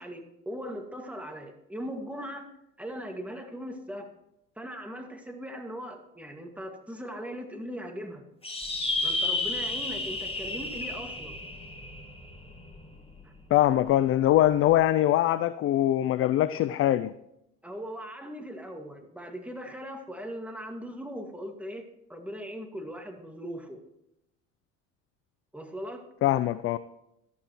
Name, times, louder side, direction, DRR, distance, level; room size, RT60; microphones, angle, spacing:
voice 1, 0.0-2.5 2.8-4.1 4.6-8.2 9.0-11.4 13.2-13.3 17.6-23.8 25.5-26.1, equal, 5° right, 4 dB, 2.0 m, -39 dB
sound 1, 8.4-13.2, left 2 dB, 15° left, 2.3 m, -32 dB
voice 2, 13.5-17.1 26.2-26.8, left 13 dB, 35° left, 15 dB, 0.4 m, -23 dB
12.5 x 12.0 x 3.1 m, 0.83 s
hypercardioid pair, 65°, 40 cm